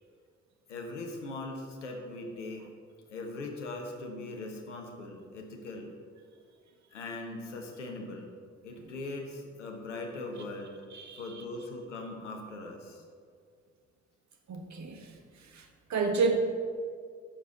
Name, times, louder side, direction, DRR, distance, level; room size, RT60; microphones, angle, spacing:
voice 1, 0.7-2.7 3.1-5.9 6.9-8.3 8.6-10.8 11.2-13.0, left 2 dB, 90° left, 2 dB, 1.2 m, -40 dB
voice 2, 10.9-11.4 14.5-15.1 15.4-16.4, right 4 dB, 50° right, 4 dB, 1.6 m, -31 dB
16.5 x 6.9 x 4.0 m, 2.1 s
hypercardioid pair, 45°, 35 cm